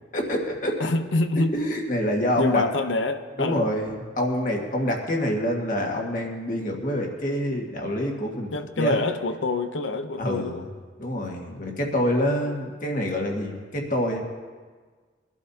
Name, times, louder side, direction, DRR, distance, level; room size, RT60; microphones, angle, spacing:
voice 1, 0.1-0.9 1.5-2.6 3.4-8.5 8.8-9.0 10.2-10.6 11.0-14.2, equal, 45° left, 1 dB, 1.8 m, -26 dB
voice 2, 0.8-1.5 2.4-3.7 8.5-10.7 11.5-11.6, left 3 dB, 85° left, 9 dB, 0.8 m, -26 dB
22.5 x 12.0 x 2.8 m, 1.5 s
head